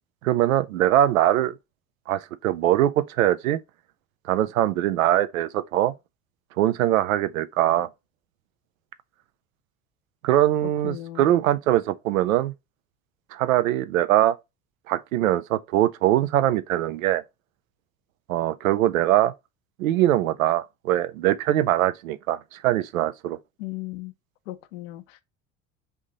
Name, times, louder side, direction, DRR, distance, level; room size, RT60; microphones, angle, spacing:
voice 1, 0.2-1.6 2.1-3.6 4.2-5.9 6.6-7.9 10.2-12.5 13.3-14.4 14.9-17.2 18.3-19.3 19.8-23.4, right 13 dB, 70° right, 0.5 m, -22 dB
voice 2, 10.6-11.4 23.6-24.1 24.5-25.2, left 17 dB, 60° left, 0.6 m, -37 dB
3.6 x 2.7 x 3.6 m
figure-of-eight pair, 65°, 43 cm